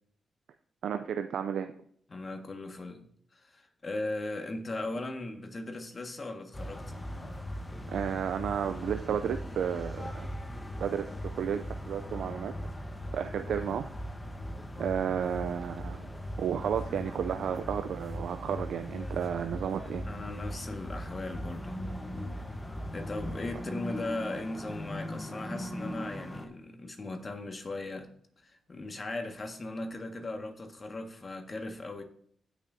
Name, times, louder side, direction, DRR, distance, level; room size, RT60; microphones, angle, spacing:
voice 1, 0.8-1.7 7.9-10.3 10.8-12.5 13.1-13.9 14.8-16.1 16.4-20.1, right 8 dB, 80° right, 0.4 m, -32 dB
voice 2, 2.1-6.8 13.6-13.8 20.1-21.8 22.9-32.0, left 2 dB, 40° left, 1.6 m, -38 dB
sound 1, 6.5-26.5, equal, 15° left, 1.1 m, -39 dB
16.0 x 6.1 x 2.7 m
cardioid pair, 65°, 0 cm